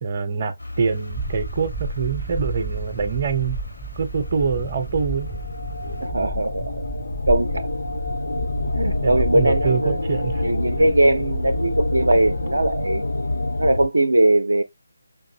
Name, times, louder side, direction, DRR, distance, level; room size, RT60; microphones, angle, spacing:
voice 1, 0.0-3.6 4.0-5.3 9.0-10.4 10.8-11.0, right 5 dB, 30° right, 0.7 m, -25 dB
sound 1, 0.6-6.1, left 1 dB, 80° left, 1.3 m, -41 dB
sound 2, 1.1-12.9, right 1 dB, 5° right, 0.3 m, -33 dB
sound 3, 4.0-13.9, left 2 dB, 60° left, 0.4 m, -27 dB
voice 2, 6.0-6.8 7.3-7.7 8.7-10.0 10.4-13.0 13.6-14.6, right 1 dB, 70° right, 0.6 m, -20 dB
5.2 x 2.6 x 2.7 m
figure-of-eight pair, 150°, 0 cm